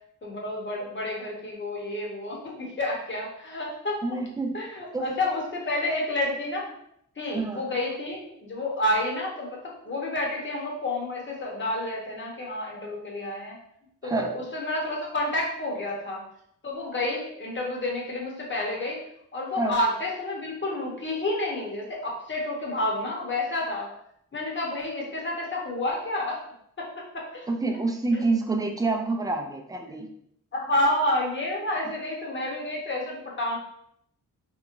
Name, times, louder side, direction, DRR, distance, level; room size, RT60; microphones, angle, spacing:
voice 1, 0.2-4.0 4.5-6.7 7.2-13.6 14.0-16.2 16.6-19.0 19.3-23.9 24.3-26.4 26.8-27.5 28.1-28.2 30.5-33.6, left 1 dB, 35° left, -2 dB, 0.9 m, -29 dB
voice 2, 4.0-4.6 4.9-5.0 7.3-7.6 14.0-14.3 19.6-19.8 27.5-30.1, right 3 dB, 10° right, 2 dB, 0.4 m, -27 dB
3.4 x 3.0 x 2.5 m, 0.71 s
wide cardioid pair, 120°, 33 cm